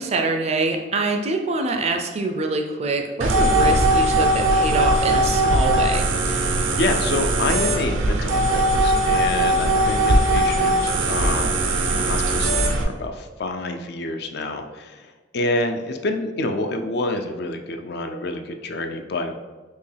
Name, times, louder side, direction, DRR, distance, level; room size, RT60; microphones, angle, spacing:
voice 1, 0.0-6.1, right 2 dB, 35° right, 3 dB, 0.4 m, -25 dB
sound 1, 3.2-12.8, right 1 dB, 80° right, 0.6 m, -20 dB
voice 2, 6.2-19.3, left 2 dB, 55° left, 5 dB, 0.4 m, -28 dB
4.4 x 2.8 x 3.3 m, 1.3 s
head